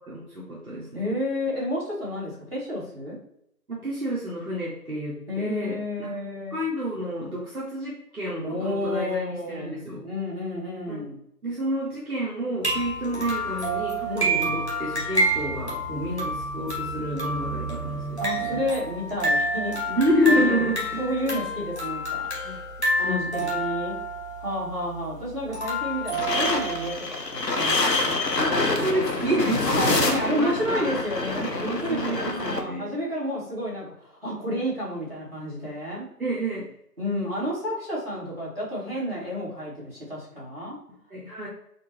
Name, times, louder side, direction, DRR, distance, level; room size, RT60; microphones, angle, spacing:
voice 1, 0.0-1.1 3.7-10.0 10.9-11.0 11.4-18.6 19.9-21.0 21.3-21.4 22.4-22.6 23.0-23.5 28.4-30.9 31.6-32.9 36.2-36.7 41.1-41.5, equal, 60° right, -5 dB, 0.8 m, -29 dB
voice 2, 0.9-3.2 5.3-6.6 8.4-11.1 14.1-14.6 18.2-19.8 20.2-20.6 21.0-22.3 23.0-23.9 24.4-28.2 29.7-36.0 37.0-40.8, left 1 dB, 35° right, -9 dB, 1.4 m, -30 dB
sound 1, 12.6-26.9, right 1 dB, 40° left, 0.9 m, -28 dB
sound 2, 26.1-32.6, left 3 dB, 80° left, 0.8 m, -26 dB
4.1 x 2.0 x 3.0 m, 0.75 s
figure-of-eight pair, 180°, 49 cm